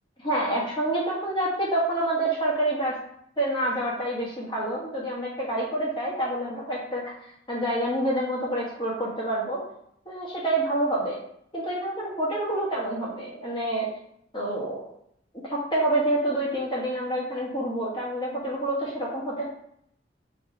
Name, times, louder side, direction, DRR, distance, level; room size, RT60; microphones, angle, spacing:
voice 1, 0.2-2.9 3.4-7.0 7.5-9.6 10.0-11.2 11.5-13.9 14.3-14.8 15.5-19.5, right 1 dB, 25° left, -4 dB, 1.2 m, -27 dB
3.1 x 3.1 x 4.6 m, 0.73 s
head